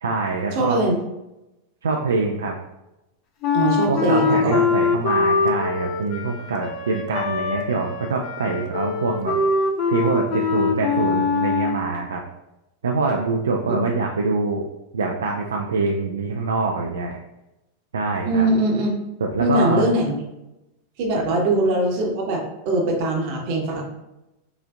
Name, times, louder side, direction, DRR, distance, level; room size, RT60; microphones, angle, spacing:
voice 1, 0.0-0.8 1.8-2.6 3.9-9.4 9.9-12.2 12.8-14.6 14.9-17.2 17.9-18.5 19.2-19.9, right 3 dB, 65° right, 1 dB, 0.3 m, -24 dB
voice 2, 0.5-0.9 3.5-4.7 13.7-13.8 18.2-18.9 19.4-20.1 21.0-22.4 22.6-23.8, right 1 dB, 45° right, 0 dB, 0.9 m, -21 dB
Wind instrument woodwind instrument, 3.4-11.8, left 4 dB, 40° left, 0.5 m, -23 dB
4.9 x 2.5 x 2.4 m, 0.93 s
figure-of-eight pair, 90°, 0 cm